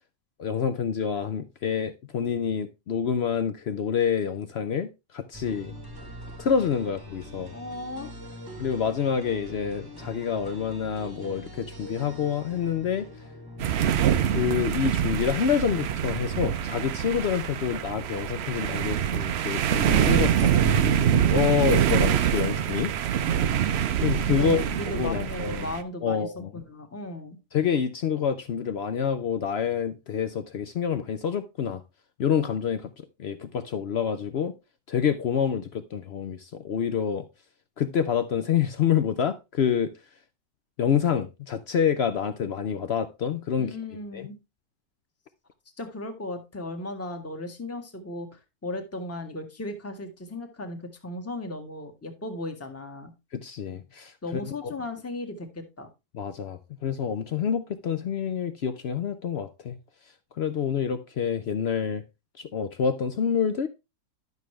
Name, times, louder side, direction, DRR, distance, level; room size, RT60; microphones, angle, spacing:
voice 1, 0.4-5.8 6.4-7.5 8.6-13.1 14.2-22.9 24.0-24.7 24.9-25.7 26.0-26.6 27.5-31.8 32.2-34.5 34.9-37.3 37.8-39.9 40.8-43.8 44.1-44.3 53.3-54.7 56.1-59.8 60.3-62.0 62.4-63.7, left 7 dB, 85° left, 0.5 m, -27 dB
sound 1, 5.3-15.2, equal, 15° right, 1.0 m, -43 dB
voice 2, 7.5-8.1 24.4-27.4 43.6-44.4 45.8-53.1 54.2-55.9, left 2 dB, 10° left, 1.1 m, -36 dB
sound 2, 13.6-25.8, right 9 dB, 90° right, 0.5 m, -25 dB
11.0 x 6.4 x 3.1 m
omnidirectional pair, 1.8 m